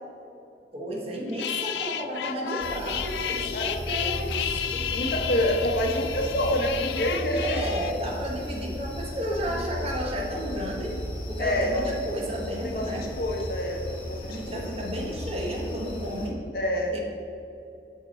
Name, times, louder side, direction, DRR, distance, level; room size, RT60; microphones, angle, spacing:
voice 1, 0.7-5.1 7.4-11.0 11.3-13.1 14.3-16.4 16.9-17.0, equal, 35° right, -1 dB, 1.0 m, -32 dB
sound 1, 1.3-7.9, left 10 dB, 80° left, 0.3 m, -32 dB
sound 2, 2.6-16.3, left 1 dB, 30° left, 0.9 m, -36 dB
voice 2, 4.9-7.8 11.4-11.9 12.6-14.6 16.5-17.0, equal, 55° left, 1 dB, 0.9 m, -27 dB
6.7 x 6.2 x 4.1 m, 2.8 s
head